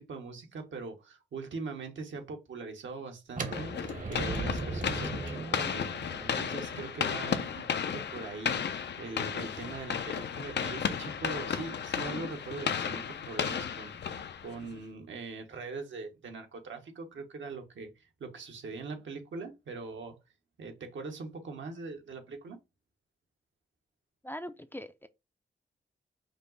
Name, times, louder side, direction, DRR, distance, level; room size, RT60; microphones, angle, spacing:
voice 1, 0.0-20.2 20.6-22.6, right 4 dB, 75° right, 1.2 m, -42 dB
sound 1, 3.3-9.2, right 3 dB, 40° right, 1.0 m, -39 dB
sound 2, 3.5-14.8, left 7 dB, 65° left, 0.6 m, -34 dB
voice 2, 24.2-25.1, equal, 10° left, 0.5 m, -41 dB
5.3 x 2.0 x 3.8 m
cardioid pair, 65°, 20 cm